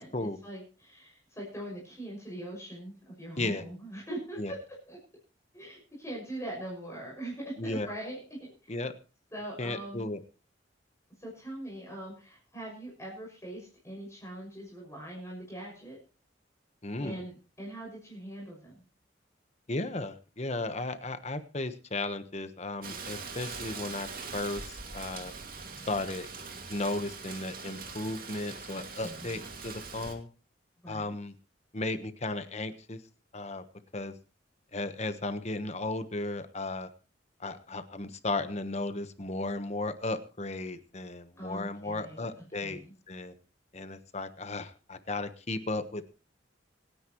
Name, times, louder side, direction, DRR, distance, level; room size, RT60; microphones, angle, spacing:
voice 1, 0.0-4.6 4.9-5.0 5.5-8.8 9.3-10.1 11.2-16.0 17.0-18.8 29.0-29.4 30.8-31.1 41.4-42.3 42.6-42.9, right 1 dB, 15° left, -3 dB, 6.3 m, -42 dB
voice 2, 7.6-7.9 8.7-8.9 9.6-10.2 16.8-17.2 19.7-24.1 24.3-25.3 25.9-26.3 26.7-30.3 30.9-31.3 31.7-33.0 33.3-33.6 33.9-34.1 34.7-36.9 37.4-42.8 43.1-43.3 43.7-46.0, left 2 dB, 35° left, 10 dB, 1.2 m, -35 dB
Rain, 22.8-30.1, right 4 dB, 50° right, 2.4 m, -42 dB
26.5 x 9.9 x 3.1 m, 0.35 s
head